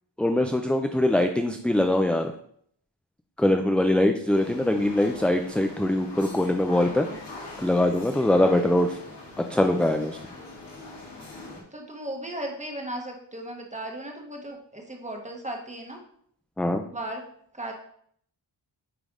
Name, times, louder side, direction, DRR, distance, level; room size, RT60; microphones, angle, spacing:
voice 1, 0.2-2.3 3.4-7.1 7.6-9.0 9.5-10.2 16.6-16.8, left 1 dB, 5° left, 5 dB, 0.3 m, -22 dB
sound 1, 4.3-11.6, left 2 dB, 60° left, 2.2 m, -43 dB
voice 2, 6.8-7.2 8.3-8.6 11.7-16.0 16.9-17.2 17.5-17.7, right 1 dB, 15° right, 1 dB, 1.2 m, -36 dB
9.1 x 3.4 x 3.6 m, 0.64 s
wide cardioid pair, 95°, 46 cm